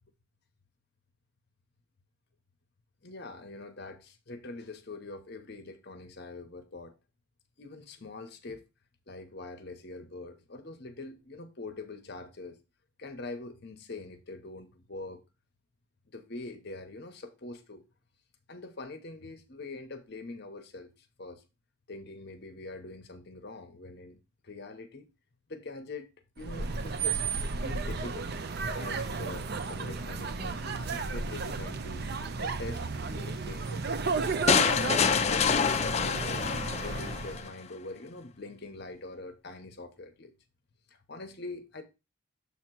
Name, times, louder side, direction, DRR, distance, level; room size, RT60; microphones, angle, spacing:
voice 1, 3.0-6.9 7.6-8.6 9.1-12.6 13.0-15.2 16.1-17.8 18.5-21.4 21.9-25.1 25.5-26.1 26.4-27.2 27.5-28.3 28.7-32.0 32.3-33.9 34.4-36.4 36.8-40.3 40.9-41.8, left 2 dB, 50° left, 0.8 m, -44 dB
sound 1, 26.4-37.5, right 4 dB, 50° right, 0.5 m, -33 dB
sound 2, 34.5-37.5, left 6 dB, 30° left, 0.4 m, -26 dB
7.1 x 2.9 x 5.9 m
head